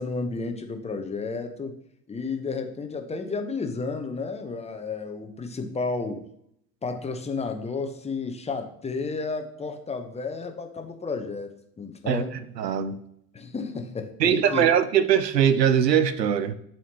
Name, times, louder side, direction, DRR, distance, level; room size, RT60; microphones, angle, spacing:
voice 1, 0.0-1.8 2.1-6.2 6.8-11.5 11.8-12.3 13.3-14.7, left 4 dB, 15° left, 5 dB, 0.9 m, -32 dB
voice 2, 12.6-13.0 14.2-16.5, right 9 dB, 85° right, 13 dB, 0.7 m, -21 dB
10.5 x 4.3 x 2.9 m, 0.72 s
figure-of-eight pair, 75°, 48 cm